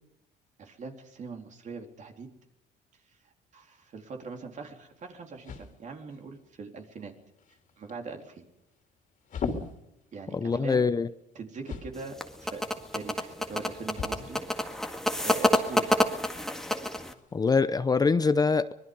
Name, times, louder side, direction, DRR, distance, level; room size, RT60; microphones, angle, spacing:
voice 1, 0.6-2.3 3.2-7.1 7.8-8.4 10.1-10.8 11.3-14.7 15.2-15.9, right 4 dB, 45° right, 3.8 m, -42 dB
sound 1, 4.1-17.5, left 5 dB, 50° left, 3.1 m, -44 dB
voice 2, 10.3-11.1 17.3-18.7, left 4 dB, 20° left, 0.7 m, -24 dB
sound 2, 12.0-17.1, left 1 dB, 5° left, 1.9 m, -28 dB
25.0 x 20.5 x 5.4 m
cardioid pair, 110°, 17 cm